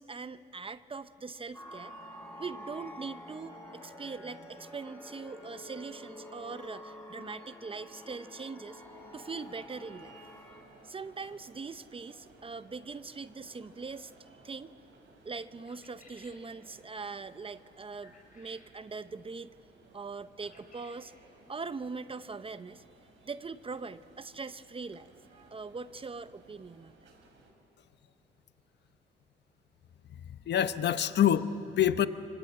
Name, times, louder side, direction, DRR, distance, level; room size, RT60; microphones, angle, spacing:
voice 1, 0.0-1.9 2.4-8.8 9.1-10.2 10.8-14.1 14.4-14.8 15.2-19.5 19.9-21.1 21.5-22.8 23.2-27.0, right 4 dB, 25° right, 13 dB, 0.7 m, -42 dB
sound 1, 1.5-10.6, equal, 10° left, 7.1 m, -48 dB
sound 2, 8.7-27.5, right 2 dB, 70° right, 5.2 m, -60 dB
Quail Sound, 15.7-16.5 18.0-18.7 20.4-21.0, left 3 dB, 40° left, 5.6 m, -58 dB
voice 2, 30.1-32.1, left 10 dB, 60° left, 12 dB, 0.9 m, -26 dB
25.0 x 25.0 x 8.8 m, 2.7 s
cardioid pair, 90°, 20 cm